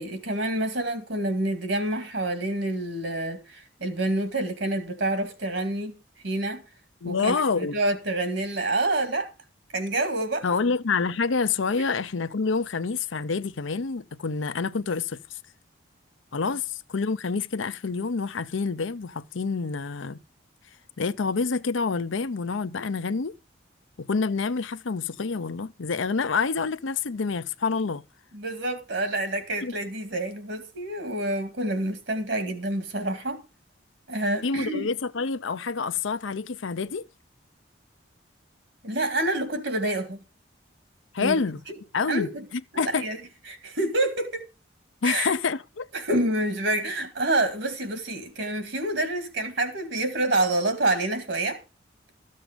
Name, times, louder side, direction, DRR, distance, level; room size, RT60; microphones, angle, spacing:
voice 1, 0.0-5.9 6.2-6.6 7.0-9.3 9.7-10.5 11.8-11.9 28.3-33.4 34.1-34.9 38.8-40.2 41.2-41.4 41.7-41.8 42.1-42.5 42.7-43.2 43.5-44.5 45.0-45.4 45.9-51.6, right 1 dB, 65° right, 2.3 m, -27 dB
voice 2, 7.0-7.7 10.4-15.4 16.3-20.2 21.0-23.3 24.0-28.0 29.6-29.7 34.4-37.1 41.1-41.6 41.9-42.3 42.8-43.0 45.0-45.9, left 4 dB, 80° left, 0.7 m, -27 dB
14.0 x 7.6 x 5.1 m
head